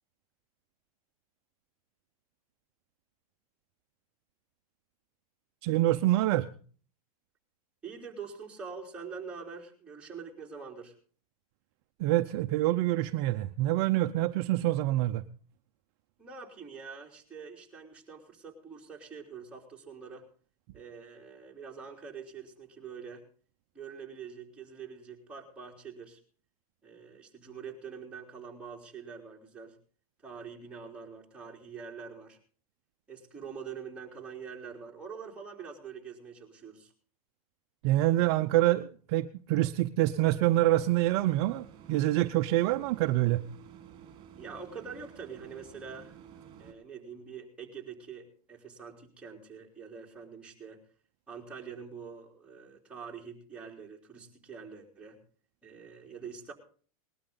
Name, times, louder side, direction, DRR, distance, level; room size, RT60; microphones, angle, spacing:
voice 1, 5.6-6.5 12.0-15.2 37.8-43.4, right 16 dB, 45° right, 8 dB, 0.7 m, -26 dB
voice 2, 7.8-10.9 16.2-20.2 20.7-23.2 23.7-26.2 26.8-29.8 30.2-32.4 33.1-36.9 44.3-46.2 46.6-50.8 51.3-55.2 55.6-56.5, right 6 dB, 5° right, -2 dB, 3.7 m, -45 dB
sound 1, 40.8-46.7, right 9 dB, 25° right, 3.8 m, -52 dB
20.0 x 12.5 x 3.9 m, 0.42 s
supercardioid pair, 145°, 19 cm